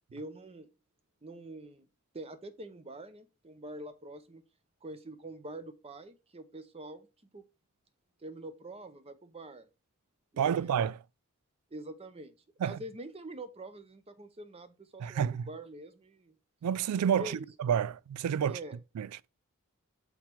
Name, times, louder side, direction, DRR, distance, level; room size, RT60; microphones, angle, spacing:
voice 1, 0.1-0.7 1.2-1.9 2.1-4.4 4.8-7.1 7.3-7.4 8.2-9.7 10.3-10.8 11.7-12.3 12.6-16.4 17.2-17.5 18.4-18.8, right 1 dB, 25° right, 0.7 m, -45 dB
voice 2, 10.4-11.0 12.6-12.8 15.0-15.4 16.6-18.6 19.0-19.1, right 8 dB, 90° right, 0.3 m, -29 dB
5.8 x 4.3 x 4.5 m
head